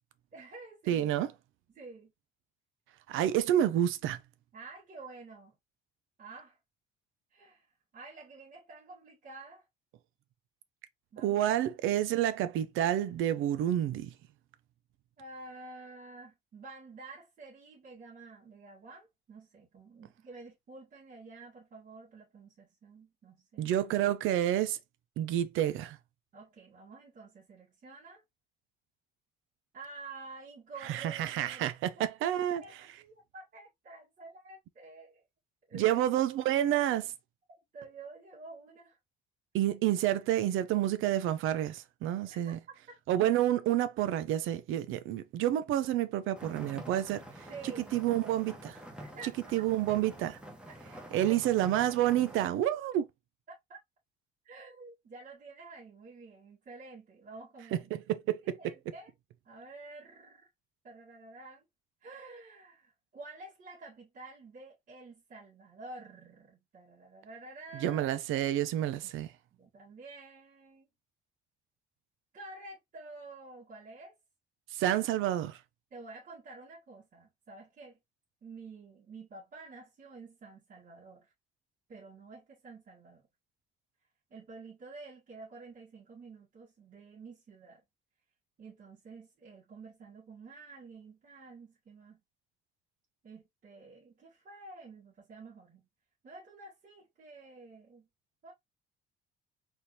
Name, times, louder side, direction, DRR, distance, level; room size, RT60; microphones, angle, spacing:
voice 1, 0.3-1.1 1.7-2.1 4.5-5.6 6.2-6.6 7.3-9.7 11.1-11.6 15.2-23.7 26.3-28.2 29.7-31.7 32.0-32.1 32.3-35.2 35.7-36.0 37.5-39.0 42.5-43.0 47.5-48.1 49.0-49.6 50.7-50.8 51.2-51.4 53.5-53.8 54.4-57.9 58.6-59.1 59.4-60.5 60.8-61.6 62.0-68.1 69.5-70.9 72.3-74.1 75.9-78.0 78.4-81.3 81.9-83.3 84.3-87.8 88.6-92.2 93.2-95.9 96.2-98.1 98.4-98.5, right 3 dB, 45° right, 2.4 m, -50 dB
voice 2, 0.9-1.3 3.1-4.2 11.2-14.1 23.6-24.8 25.2-26.0 30.8-32.6 35.7-37.1 39.5-42.6 43.1-47.5 47.9-48.8 49.5-50.4 51.1-53.0 57.7-58.6 67.8-69.3 74.7-75.6, right 12 dB, 85° right, 0.6 m, -29 dB
sound 1, 46.3-52.5, right 1 dB, 5° right, 1.2 m, -47 dB
4.3 x 3.4 x 2.8 m
cardioid pair, 150°, 20 cm